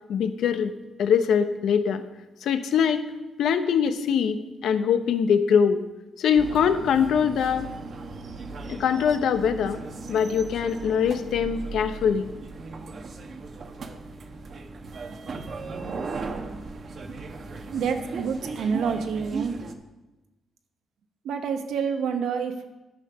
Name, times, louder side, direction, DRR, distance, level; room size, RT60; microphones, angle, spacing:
voice 1, 0.1-0.7 1.0-2.0 2.4-3.1 3.4-5.8 6.2-7.7 8.7-9.8 10.1-12.3, left 7 dB, 75° left, 9 dB, 0.8 m, -23 dB
sound 1, 6.4-19.7, right 3 dB, 55° right, 0.9 m, -37 dB
voice 2, 17.7-19.5 21.2-22.7, right 6 dB, 80° right, 6 dB, 1.0 m, -28 dB
9.7 x 6.7 x 5.9 m, 1.1 s
cardioid pair, 95°, 0 cm